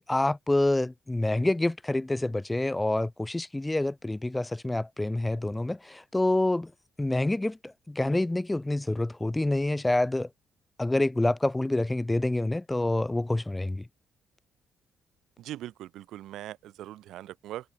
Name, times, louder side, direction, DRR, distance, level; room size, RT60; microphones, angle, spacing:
voice 1, 0.1-6.7 7.0-10.3 10.8-13.9, left 2 dB, 10° left, 0.9 m, -27 dB
voice 2, 15.4-17.7, right 13 dB, 85° right, 1.2 m, -41 dB
cardioid pair, 90°, 0 cm